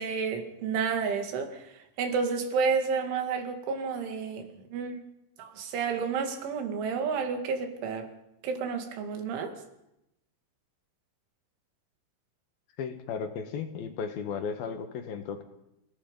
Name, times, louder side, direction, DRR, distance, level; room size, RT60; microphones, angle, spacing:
voice 1, 0.0-1.6 2.0-4.5 4.7-5.0 5.4-8.1 8.4-9.5, right 5 dB, 80° right, 5 dB, 4.6 m, -30 dB
voice 2, 12.8-15.4, left 6 dB, 65° left, 6 dB, 2.9 m, -35 dB
28.5 x 17.5 x 5.4 m, 0.85 s
omnidirectional pair, 5.4 m